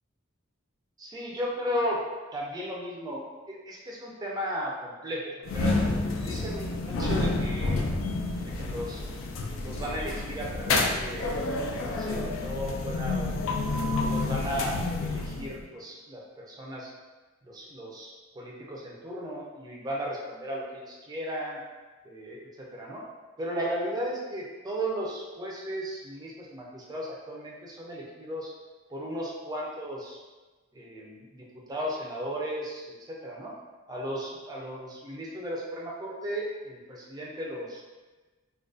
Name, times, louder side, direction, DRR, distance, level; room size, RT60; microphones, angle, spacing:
voice 1, 1.0-2.0 2.3-5.8 6.2-7.9 8.4-9.0 9.6-11.3 11.8-13.4 13.9-16.9 17.4-21.6 22.0-23.0 23.4-28.5 28.9-30.2 30.7-33.5 33.9-37.8, equal, 20° right, -3 dB, 0.4 m, -35 dB
sound 1, 5.4-15.6, left 2 dB, 70° left, 0.3 m, -29 dB
2.3 x 2.2 x 2.4 m, 1.3 s
head